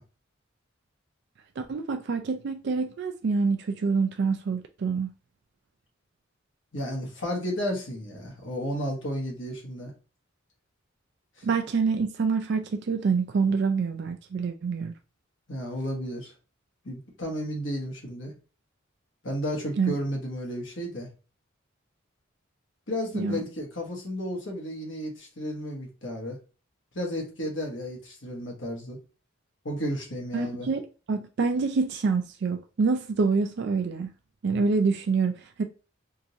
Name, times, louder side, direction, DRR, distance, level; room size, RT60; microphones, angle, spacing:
voice 1, 1.6-5.1 11.4-14.9 19.8-19.9 23.1-23.4 30.3-34.1 34.4-35.6, right 4 dB, 55° right, 0.4 m, -26 dB
voice 2, 6.7-9.9 11.4-11.5 15.5-16.3 16.8-18.3 19.2-21.1 22.9-26.4 26.9-29.0 29.6-30.7, equal, 65° left, 1.3 m, -33 dB
3.7 x 2.5 x 2.8 m
head